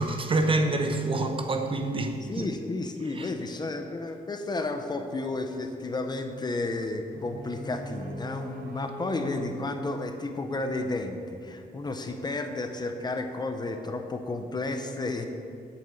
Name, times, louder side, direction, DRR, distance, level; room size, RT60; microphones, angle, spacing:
voice 1, 0.0-2.5, right 2 dB, 35° right, 0.8 m, -26 dB
voice 2, 2.2-15.3, left 2 dB, 25° left, 0.7 m, -32 dB
sound 1, 7.1-11.1, equal, 70° right, 1.2 m, -42 dB
8.7 x 7.2 x 7.8 m
wide cardioid pair, 160°, 16 cm